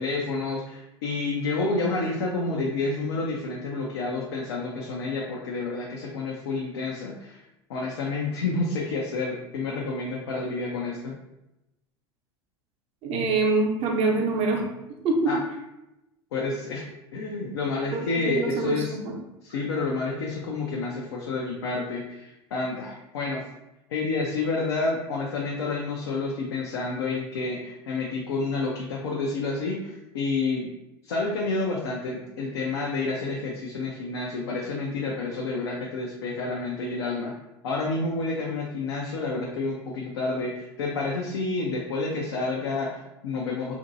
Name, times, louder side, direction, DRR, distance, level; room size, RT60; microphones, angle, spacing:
voice 1, 0.0-7.4 7.7-11.1 15.3-15.4 16.3-16.8 17.1-18.9 19.4-23.4 23.9-30.7 31.0-37.3 37.6-43.8, left 3 dB, 80° left, -2 dB, 0.5 m, -29 dB
voice 2, 13.0-14.6 15.0-15.3 17.9-18.0 18.3-18.8, right 3 dB, 50° right, 1 dB, 0.7 m, -24 dB
2.9 x 2.6 x 2.6 m, 0.93 s
hypercardioid pair, 80°, 13 cm